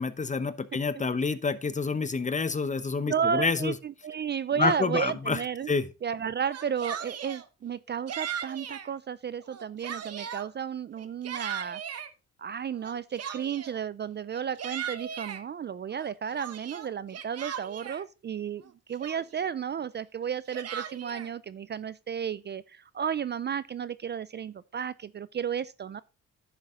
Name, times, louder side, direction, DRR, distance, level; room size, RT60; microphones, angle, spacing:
voice 1, 0.0-3.7 4.6-5.4 5.7-5.9, left 4 dB, 25° left, 0.9 m, -28 dB
voice 2, 3.1-5.7 6.0-11.8 12.4-26.0, right 7 dB, 35° right, 0.4 m, -33 dB
Yell, 6.4-7.4 8.1-8.9 9.4-10.5 11.0-12.1 12.8-13.8 14.3-15.4 16.0-18.0 18.6-18.7 19.0-19.5 20.2-21.3, right 8 dB, 55° right, 1.1 m, -38 dB
10.5 x 7.2 x 3.7 m
cardioid pair, 90°, 30 cm